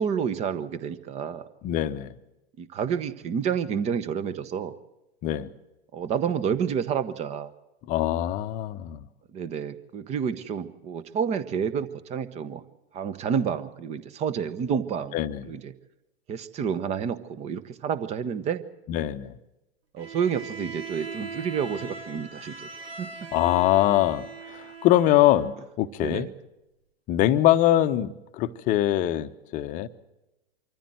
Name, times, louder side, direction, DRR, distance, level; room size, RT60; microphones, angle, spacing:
voice 1, 0.0-1.4 2.6-4.7 5.9-7.5 9.3-12.6 12.9-15.2 15.4-15.7 16.3-18.6 19.9-22.7 23.0-23.1 26.0-26.3, right 7 dB, 20° right, 15 dB, 1.1 m, -29 dB
voice 2, 1.6-2.1 5.2-5.5 7.9-9.1 15.1-15.5 18.9-19.4 23.3-26.3 27.1-29.9, left 13 dB, 25° left, 12 dB, 0.9 m, -23 dB
Bowed string instrument, 20.0-25.6, right 4 dB, 75° right, 1.7 m, -40 dB
25.0 x 14.5 x 7.8 m, 0.98 s
figure-of-eight pair, 105°, 31 cm